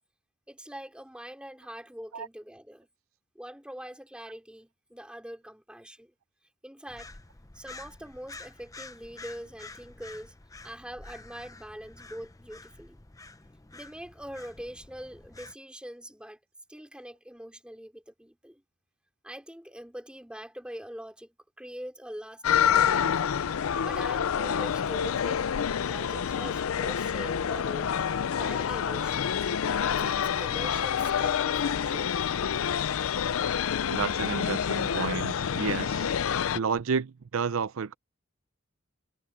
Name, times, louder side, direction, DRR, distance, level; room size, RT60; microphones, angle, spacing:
voice 1, 0.5-2.9 3.3-6.1 6.6-7.1 7.5-10.4 10.6-13.0 13.7-16.4 16.7-18.6 19.2-23.1 23.8-25.5 25.8-27.9 28.4-29.5 30.0-32.1, equal, 5° right, 3.2 m, -43 dB
sound 1, 6.9-15.5, left 3 dB, 15° left, 0.7 m, -49 dB
sound 2, 22.4-36.6, left 8 dB, 80° left, 0.5 m, -27 dB
voice 2, 33.9-36.1 36.5-37.9, right 5 dB, 75° right, 0.5 m, -31 dB
head